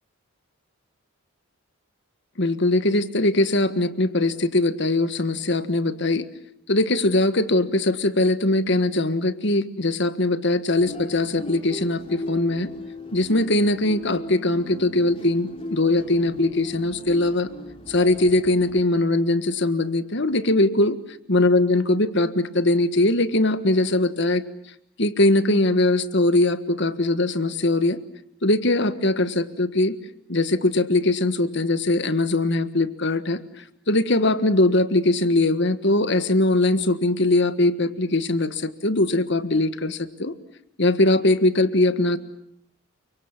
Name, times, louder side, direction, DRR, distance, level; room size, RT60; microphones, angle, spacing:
voice 1, 2.4-6.3 6.7-12.7 13.1-17.5 17.9-21.0 21.3-24.4 25.0-28.0 28.4-29.9 30.3-33.4 33.9-40.3 40.8-42.2, left 2 dB, 55° left, 11 dB, 1.6 m, -21 dB
sound 1, 10.7-18.8, left 1 dB, 25° left, 3.1 m, -37 dB
29.5 x 25.0 x 7.3 m, 0.72 s
head